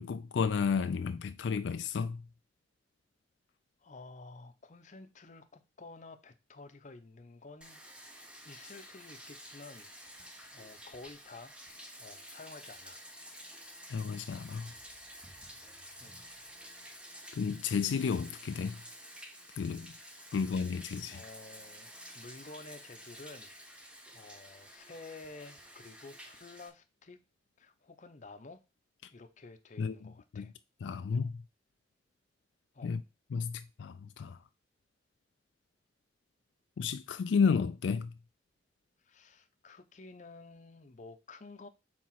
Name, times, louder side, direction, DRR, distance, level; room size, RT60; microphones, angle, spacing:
voice 1, 0.0-2.2 13.9-14.7 17.3-18.8 19.6-19.9 20.3-21.2 29.8-30.0 30.3-30.5 30.8-31.4 32.8-33.0 33.3-34.4 36.8-38.1, left 5 dB, 85° left, 0.4 m, -32 dB
voice 2, 3.8-7.8 8.4-10.2 10.5-11.6 11.9-13.0 16.0-16.2 21.0-27.2 27.6-28.6 29.1-30.5 32.7-33.0 39.0-41.7, left 3 dB, 40° left, 0.7 m, -51 dB
Bathtub (filling or washing), 7.6-26.7, equal, 5° right, 0.8 m, -51 dB
4.7 x 4.1 x 5.7 m
head